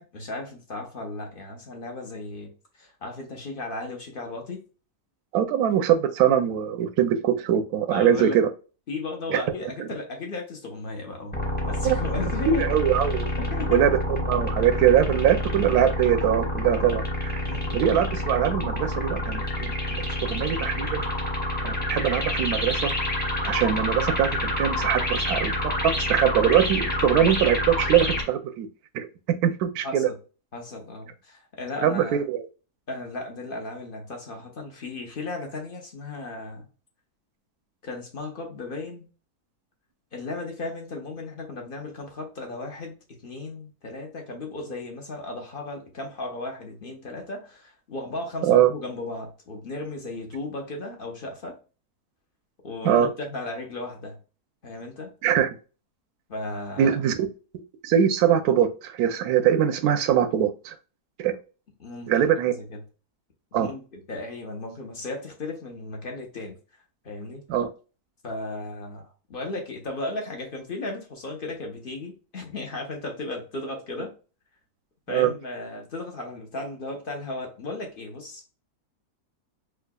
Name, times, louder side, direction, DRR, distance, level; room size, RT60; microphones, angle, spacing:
voice 1, 0.0-2.5 2.8-4.6 7.9-8.4 8.9-12.6 13.4-13.9 17.4-17.8 29.8-30.2 30.5-32.2 32.9-36.7 37.8-39.1 40.1-51.6 52.6-54.2 54.6-55.1 56.3-56.9 61.8-62.3 62.6-62.8 63.5-66.6 67.0-67.4 68.2-74.1 75.1-78.6, left 2 dB, 40° left, 0.9 m, -35 dB
voice 2, 5.3-8.5 9.3-9.4 9.8-9.9 11.8-12.0 12.5-13.3 13.7-14.0 14.3-17.4 17.7-21.0 21.6-22.9 23.4-25.5 25.8-28.7 28.9-30.1 31.8-32.4 48.4-48.7 52.8-53.1 55.2-55.5 56.8-57.3 57.8-60.7 61.2-61.4 62.1-62.5 63.5-63.7 67.5-67.7 75.1-75.3, right 9 dB, 75° right, 1.0 m, -22 dB
sound 1, 11.3-28.2, left 1 dB, 10° left, 0.6 m, -28 dB
4.6 x 2.4 x 2.2 m
omnidirectional pair, 1.7 m